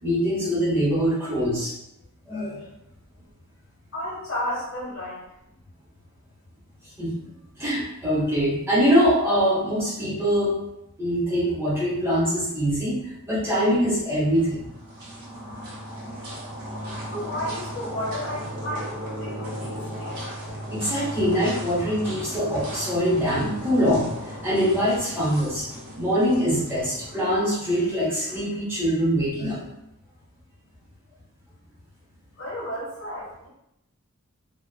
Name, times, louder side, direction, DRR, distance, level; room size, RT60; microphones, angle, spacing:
voice 1, 0.0-1.7 2.3-2.7 7.0-7.2 7.6-10.6 11.0-14.7 20.7-24.1 24.4-25.7 25.9-29.6, equal, 10° right, -8 dB, 1.1 m, -23 dB
voice 2, 3.9-5.2 17.1-18.9 19.2-20.1 32.4-33.5, equal, 60° left, -8 dB, 1.3 m, -32 dB
sound 1, 14.3-27.6, equal, 50° right, 1.1 m, -36 dB
3.7 x 2.4 x 2.2 m, 0.84 s
head